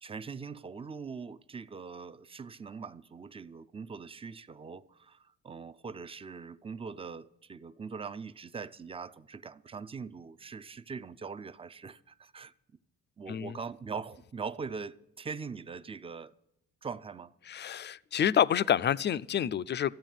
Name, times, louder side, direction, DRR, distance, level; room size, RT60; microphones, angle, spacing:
voice 1, 0.0-12.5 13.2-16.3 16.8-17.3, right 5 dB, 20° right, 0.5 m, -42 dB
voice 2, 17.5-20.0, left 9 dB, 35° left, 0.4 m, -28 dB
14.0 x 8.4 x 9.1 m
cardioid pair, 90°, 30 cm